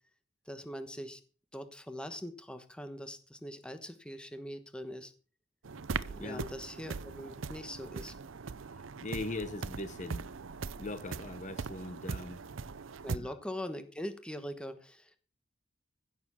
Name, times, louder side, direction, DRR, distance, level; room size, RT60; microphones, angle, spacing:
voice 1, 0.5-1.2 1.5-5.1 6.1-8.1 13.0-15.2, equal, 5° left, 1.1 m, -42 dB
sound 1, 5.6-13.2, right 4 dB, 75° right, 0.6 m, -40 dB
voice 2, 9.0-10.3 10.8-12.4 13.1-13.3, left 2 dB, 35° left, 0.8 m, -40 dB
16.0 x 7.0 x 6.2 m
head